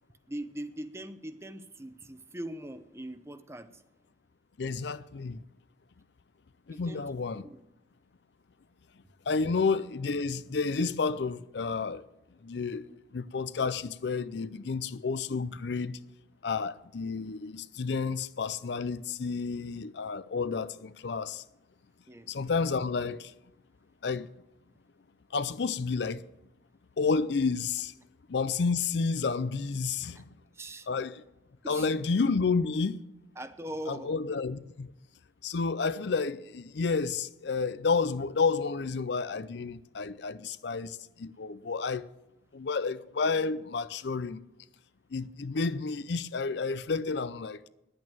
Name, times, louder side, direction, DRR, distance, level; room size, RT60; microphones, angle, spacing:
voice 1, 0.3-3.8 6.7-7.1 7.3-7.6 17.4-17.5 22.1-22.3 30.1-30.2 30.5-30.9 31.6-31.9 33.4-34.2, right 1 dB, 15° right, 0.7 m, -41 dB
voice 2, 4.6-5.4 6.7-7.4 9.3-12.0 12.4-12.9 13.1-16.0 16.4-21.4 22.3-23.3 24.0-24.3 25.3-26.2 27.0-27.9 28.3-30.2 30.9-31.2 31.7-33.0 33.9-34.9 35.4-42.1 42.5-44.4 45.1-47.6, left 4 dB, 65° left, 0.5 m, -30 dB
10.5 x 8.9 x 9.0 m
head